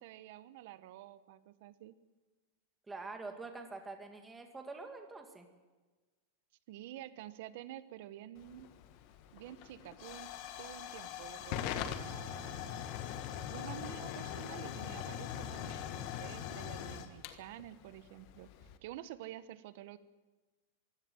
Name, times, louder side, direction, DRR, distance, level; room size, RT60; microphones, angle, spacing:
voice 1, 0.0-1.9 6.7-8.7 9.3-10.3 10.6-12.9 13.5-18.5 18.8-20.0, right 13 dB, 55° right, 14 dB, 1.3 m, -49 dB
voice 2, 2.9-5.5, right 3 dB, 10° right, 5 dB, 2.2 m, -45 dB
Hiss / Fire / Tick, 8.4-18.8, left 10 dB, 40° left, 1.6 m, -42 dB
23.5 x 16.5 x 8.0 m, 1.3 s
supercardioid pair, 165°, 0 cm